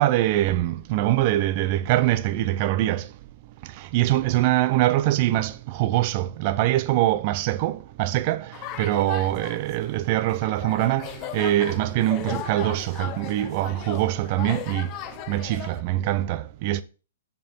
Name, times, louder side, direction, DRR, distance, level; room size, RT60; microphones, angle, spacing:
voice 1, 0.0-3.1 3.8-8.5 8.8-14.9 15.3-16.8, right 14 dB, 35° right, 0.5 m, -23 dB
sound 1, 8.5-15.8, left 11 dB, 30° left, 0.5 m, -37 dB
6.5 x 4.5 x 4.3 m
hypercardioid pair, 155°, 0 cm